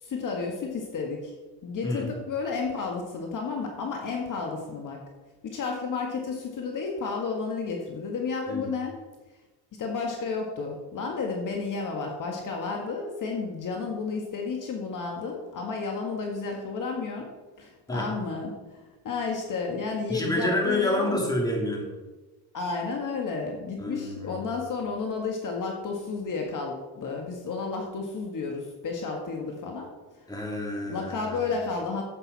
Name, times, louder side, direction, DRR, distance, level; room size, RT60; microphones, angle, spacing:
voice 1, 0.0-1.3 1.6-5.0 5.4-9.0 9.7-17.2 17.6-21.2 22.5-29.9 30.9-32.0, left 4 dB, 50° left, 1 dB, 1.7 m, -32 dB
voice 2, 20.1-21.9 23.8-24.4 30.3-31.4, left 1 dB, 10° left, -1 dB, 2.6 m, -28 dB
11.0 x 8.1 x 4.2 m, 1.2 s
cardioid pair, 115°, 41 cm